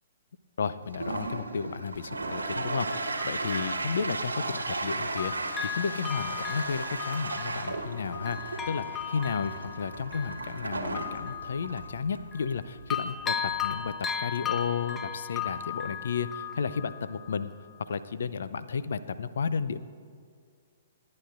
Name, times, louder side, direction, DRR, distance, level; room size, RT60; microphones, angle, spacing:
voice 1, 0.6-17.5 17.8-19.8, left 5 dB, 65° left, 14 dB, 0.5 m, -33 dB
Toilet flush, 0.8-14.0, right 2 dB, 85° right, 1.2 m, -36 dB
Bell, 2.9-4.9 5.2-12.6 12.9-17.5 17.9-18.0, left 8 dB, 15° left, 0.5 m, -37 dB
28.5 x 9.6 x 2.5 m, 2.1 s
figure-of-eight pair, 120°, 0 cm